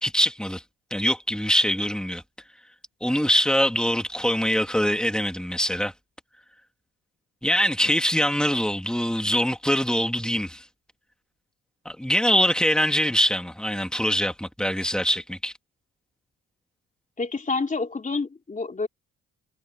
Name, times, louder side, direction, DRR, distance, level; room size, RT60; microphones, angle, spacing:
voice 1, 0.0-0.6 0.9-2.2 3.0-5.9 7.4-10.6 11.8-15.5, equal, 5° left, 2.9 m, -23 dB
voice 2, 17.2-18.9, left 3 dB, 25° left, 3.4 m, -28 dB
cardioid pair, 90°, 30 cm